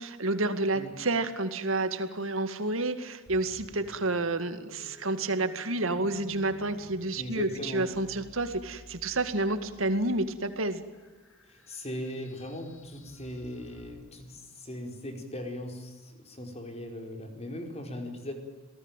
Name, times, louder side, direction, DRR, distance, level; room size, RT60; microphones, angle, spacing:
voice 1, 0.0-10.8, right 2 dB, 70° right, 9 dB, 2.1 m, -30 dB
sound 1, 3.3-13.9, right 1 dB, 70° left, 6.6 m, -53 dB
voice 2, 7.2-7.9 11.5-18.3, left 1 dB, 30° left, 4 dB, 4.8 m, -39 dB
28.0 x 19.0 x 9.1 m, 1.3 s
head